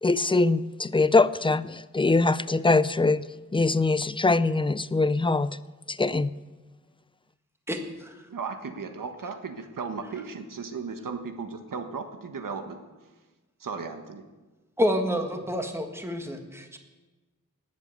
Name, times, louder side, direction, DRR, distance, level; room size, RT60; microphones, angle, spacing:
voice 1, 0.0-5.6 5.9-6.3, left 3 dB, 15° left, 17 dB, 0.4 m, -23 dB
voice 2, 7.7-8.2 14.8-16.8, equal, 10° right, 4 dB, 1.7 m, -29 dB
voice 3, 8.3-12.8 13.6-14.2, right 5 dB, 90° right, 6 dB, 1.5 m, -36 dB
19.0 x 7.5 x 8.1 m, 1.2 s
wide cardioid pair, 120°, 32 cm